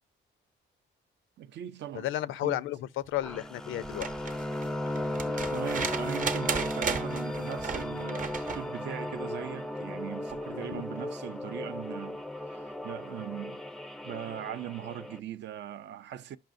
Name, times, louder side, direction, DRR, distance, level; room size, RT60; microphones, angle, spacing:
voice 1, 1.4-2.1 2.4-2.6 4.7-13.6 14.0-16.4, right 11 dB, 65° right, 0.5 m, -40 dB
voice 2, 1.9-4.1 10.5-10.8, left 14 dB, 85° left, 0.5 m, -33 dB
sound 1, 3.2-15.2, left 1 dB, 5° left, 0.4 m, -36 dB
sound 2, 3.8-8.7 10.3-10.4, right 5 dB, 40° right, 0.8 m, -35 dB
11.5 x 5.5 x 2.5 m
cardioid pair, 90°, 20 cm